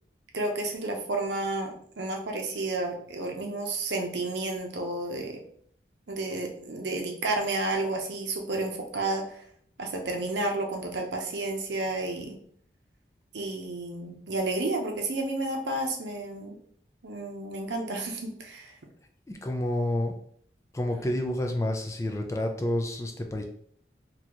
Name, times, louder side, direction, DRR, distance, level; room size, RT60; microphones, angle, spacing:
voice 1, 0.3-5.4 6.1-9.4 9.8-12.4 13.3-16.6 17.0-18.8, right 2 dB, 80° right, 3 dB, 0.7 m, -31 dB
voice 2, 19.3-20.1 20.7-23.4, left 1 dB, 15° left, 3 dB, 0.4 m, -29 dB
4.0 x 2.4 x 2.9 m, 0.62 s
head